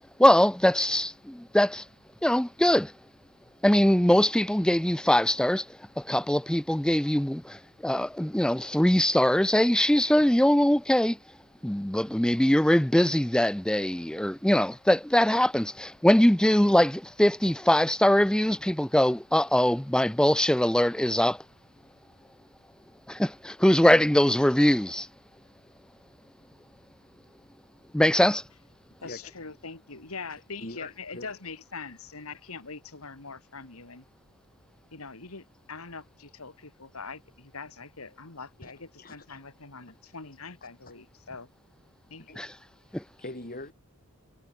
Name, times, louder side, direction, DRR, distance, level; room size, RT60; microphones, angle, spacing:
voice 1, 0.2-1.8 2.2-2.9 3.6-5.7 6.0-11.2 11.6-21.4 23.1-25.1 27.9-28.4 42.4-42.5 42.9-43.0, left 1 dB, 5° left, 0.5 m, -22 dB
voice 2, 29.0-34.0 34.9-41.5 42.1-42.5, left 4 dB, 70° left, 2.5 m, -43 dB
voice 3, 30.6-31.3 38.6-38.7 39.0-39.4 42.2-42.4 42.9-43.7, left 2 dB, 40° left, 5.8 m, -42 dB
head